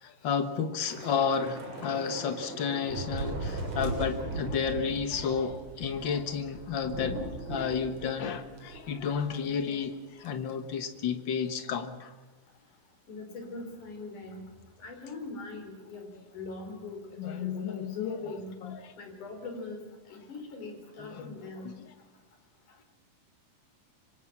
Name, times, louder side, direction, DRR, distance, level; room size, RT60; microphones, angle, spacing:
voice 1, 0.0-7.2 7.5-12.1 17.2-18.2 18.6-18.9 21.0-21.4 21.6-21.9, left 6 dB, 80° left, 8 dB, 1.0 m, -32 dB
Thunder / Rain, 0.8-9.4 9.7-9.9 10.2-10.5, right 3 dB, 45° right, 4.7 m, -39 dB
voice 2, 13.1-14.5 14.8-18.6 19.0-21.8, left 3 dB, 55° left, 4 dB, 5.4 m, -41 dB
27.0 x 24.5 x 6.0 m, 1.1 s
omnidirectional pair, 4.2 m